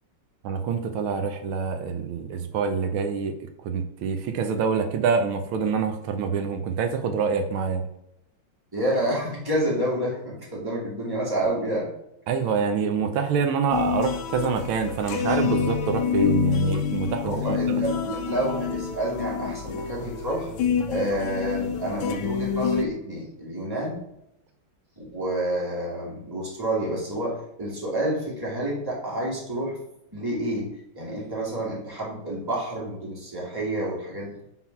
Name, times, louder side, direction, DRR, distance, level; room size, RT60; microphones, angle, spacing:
voice 1, 0.4-3.3 3.6-7.8 12.3-17.6, right 5 dB, 85° right, 6 dB, 1.6 m, -26 dB
voice 2, 8.7-11.9 17.2-20.5 20.9-24.0 25.0-29.8 30.1-30.7 30.9-34.4, right 1 dB, 10° right, -5 dB, 2.0 m, -29 dB
sound 1, 13.7-22.9, left 7 dB, 80° left, 1.4 m, -27 dB
5.8 x 3.8 x 5.8 m, 0.80 s
omnidirectional pair, 2.2 m